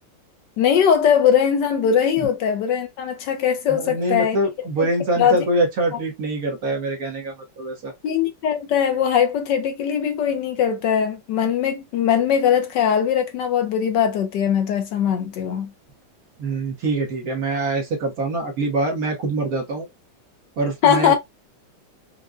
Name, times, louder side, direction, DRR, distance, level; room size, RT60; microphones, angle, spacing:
voice 1, 0.6-4.4 4.8-4.9 5.2-5.4 8.0-15.7 20.8-21.2, left 8 dB, 70° left, 1.2 m, -20 dB
voice 2, 3.7-7.9 16.4-19.9 20.6-21.2, right 2 dB, 55° right, 1.3 m, -24 dB
4.7 x 2.1 x 2.5 m
omnidirectional pair, 2.1 m